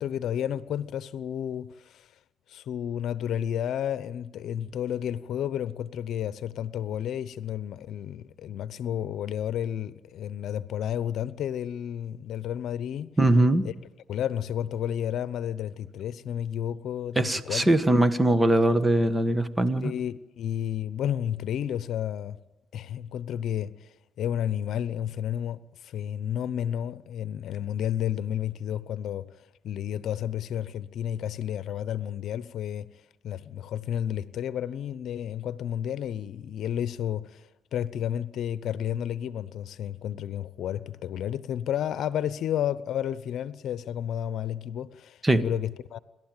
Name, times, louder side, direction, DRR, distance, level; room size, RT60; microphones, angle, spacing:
voice 1, 0.0-2.1 2.5-13.1 13.6-13.7 14.1-17.7 19.8-22.4 22.7-23.9 24.2-29.3 29.6-32.9 33.2-46.0, left 10 dB, 75° left, 0.8 m, -31 dB
voice 2, 13.2-13.6 17.1-19.9 45.2-45.4, right 1 dB, 15° right, 1.5 m, -21 dB
28.0 x 12.5 x 9.1 m
cardioid pair, 90°, 0 cm